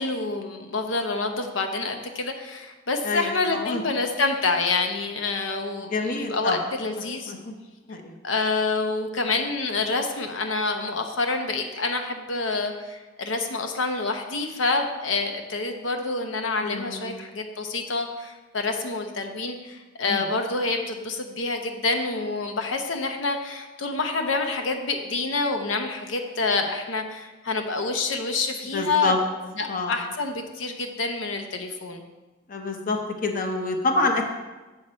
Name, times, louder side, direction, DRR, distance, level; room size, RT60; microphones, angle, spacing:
voice 1, 0.0-7.3 8.2-29.1 29.6-32.0, left 3 dB, 85° left, 5 dB, 0.8 m, -27 dB
voice 2, 3.0-3.8 5.8-6.6 7.3-7.4 7.9-8.2 16.6-17.1 20.1-20.2 28.7-29.2 29.7-30.0 32.5-34.2, left 3 dB, 45° left, 4 dB, 0.7 m, -27 dB
7.5 x 6.5 x 4.3 m, 1.2 s
head